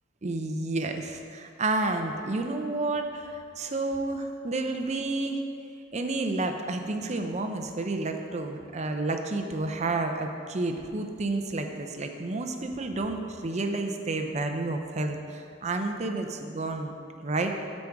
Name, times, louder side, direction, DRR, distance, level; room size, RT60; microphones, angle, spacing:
voice 1, 0.2-5.4 5.9-16.9 17.2-17.6, right 2 dB, 35° right, 5 dB, 0.6 m, -30 dB
12.5 x 5.3 x 3.5 m, 2.6 s
head